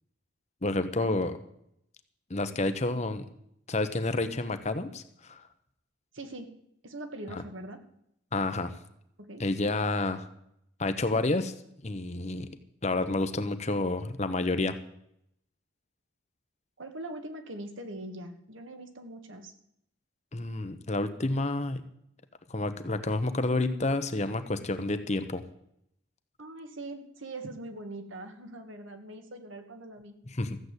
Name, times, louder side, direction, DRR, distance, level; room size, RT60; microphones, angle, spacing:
voice 1, 0.6-1.4 2.3-3.3 3.7-5.4 7.3-7.4 8.3-8.7 9.4-10.3 10.8-11.5 11.8-12.5 12.8-14.8 20.3-21.8 22.5-25.4 30.3-30.6, left 2 dB, 35° left, 10 dB, 0.9 m, -29 dB
voice 2, 6.1-6.5 6.8-7.8 9.2-9.4 16.8-19.5 26.4-30.2, right 1 dB, 70° right, 6 dB, 1.7 m, -42 dB
14.5 x 7.8 x 8.1 m, 0.73 s
head